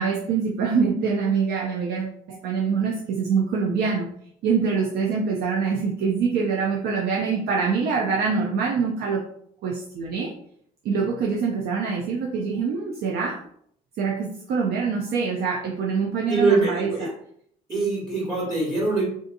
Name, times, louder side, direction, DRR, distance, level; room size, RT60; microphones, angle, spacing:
voice 1, 0.0-4.1 4.4-9.3 9.6-10.3 10.8-13.4 14.0-17.1, right 5 dB, 70° right, 0 dB, 0.5 m, -25 dB
voice 2, 16.3-17.1 17.7-19.0, right 3 dB, 25° right, -6 dB, 1.3 m, -23 dB
3.6 x 2.7 x 2.5 m, 0.67 s
cardioid pair, 110°, 17 cm